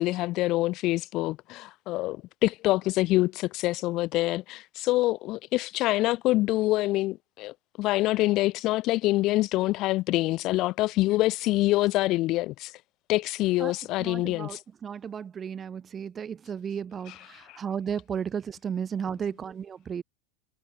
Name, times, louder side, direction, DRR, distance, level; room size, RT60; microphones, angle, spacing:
voice 1, 0.0-12.8 13.1-14.6 17.1-17.2 17.5-17.6, left 18 dB, 45° left, 0.5 m, -26 dB
voice 2, 13.6-20.0, right 7 dB, 25° right, 7.4 m, -34 dB
supercardioid pair, 140°, 0 cm